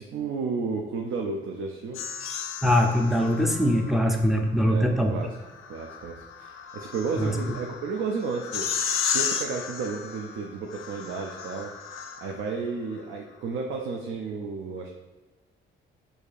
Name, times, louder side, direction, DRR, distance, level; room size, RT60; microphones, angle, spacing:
voice 1, 0.0-2.0 4.4-5.4 5.7-8.7 9.1-11.7 12.2-14.9, right 4 dB, 75° right, 2 dB, 0.4 m, -32 dB
sound 1, 1.9-3.9 5.4-12.5, left 7 dB, 85° left, 0.4 m, -33 dB
voice 2, 2.6-5.1 7.2-7.3, equal, ahead, 2 dB, 0.4 m, -22 dB
4.6 x 2.6 x 2.4 m, 1.3 s
cardioid pair, 105°, 21 cm